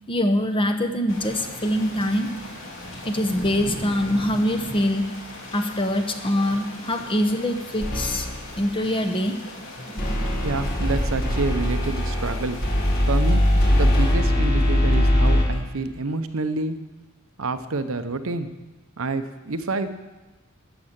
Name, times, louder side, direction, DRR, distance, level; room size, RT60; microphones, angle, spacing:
voice 1, 0.1-2.3 3.0-5.0 5.5-8.3 8.6-9.4 9.9-10.4, left 1 dB, 25° left, 6 dB, 0.9 m, -24 dB
sound 1, 1.1-14.1, left 1 dB, 60° left, 2.5 m, -39 dB
sound 2, 7.8-8.5 10.0-15.5, left 1 dB, 45° left, 2.0 m, -21 dB
voice 2, 10.4-12.6 13.1-13.4 13.7-16.8 17.4-18.5 19.0-19.9, right 3 dB, 70° right, 10 dB, 0.8 m, -28 dB
13.0 x 6.9 x 8.8 m, 1.1 s
head